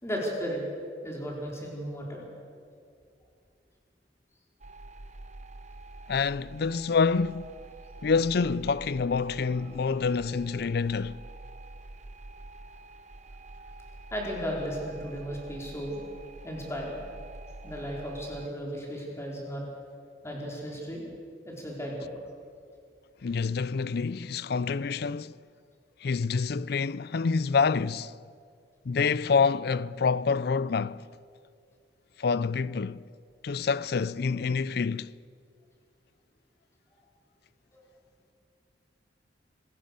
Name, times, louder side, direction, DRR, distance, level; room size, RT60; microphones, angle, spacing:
voice 1, 0.0-0.6 1.0-2.2 14.1-16.0 16.4-17.0 17.6-19.6 20.2-21.0 21.4-22.1 36.9-37.0 37.7-37.9, equal, 15° left, 4.6 m, -35 dB
sound 1, 4.6-18.5, right 2 dB, 40° right, 0.7 m, -47 dB
voice 2, 6.1-7.5 8.0-11.2 23.2-25.3 26.0-28.1 28.9-31.1 32.2-33.0 33.4-35.1, left 5 dB, 60° left, 0.5 m, -27 dB
26.0 x 15.5 x 6.7 m
head